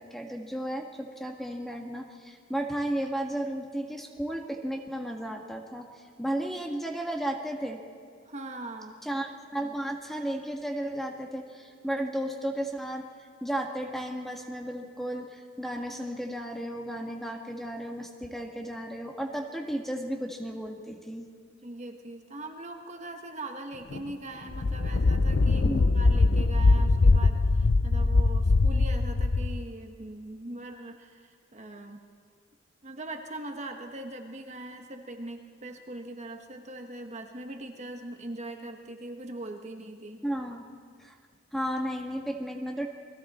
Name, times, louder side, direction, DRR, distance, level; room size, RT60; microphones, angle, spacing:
voice 1, 0.0-5.9 6.2-7.8 9.0-13.1 13.4-21.3 25.6-25.9 40.2-40.6 41.0-41.1 41.5-42.9, right 1 dB, ahead, 2 dB, 1.4 m, -34 dB
voice 2, 8.2-9.0 21.6-32.0 32.8-40.2, right 2 dB, 35° right, 4 dB, 1.4 m, -41 dB
sound 1, 23.9-24.0 24.5-29.6, left 3 dB, 60° left, 0.6 m, -22 dB
29.0 x 21.0 x 4.3 m, 2.1 s
head